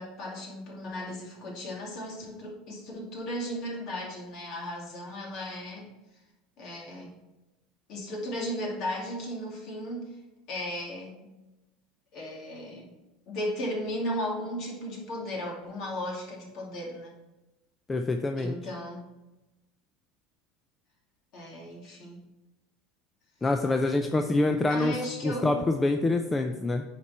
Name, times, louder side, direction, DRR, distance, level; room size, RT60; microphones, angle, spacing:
voice 1, 0.0-5.9 6.6-7.1 7.9-10.2 10.5-11.3 12.1-12.9 13.3-17.1 18.4-19.1 21.3-22.2 24.7-25.8, equal, 50° left, -2 dB, 2.5 m, -35 dB
voice 2, 17.9-18.6 23.4-25.0 25.2-26.8, left 2 dB, 15° left, 5 dB, 0.4 m, -26 dB
9.4 x 4.4 x 4.2 m, 1.0 s
supercardioid pair, 135°, 0 cm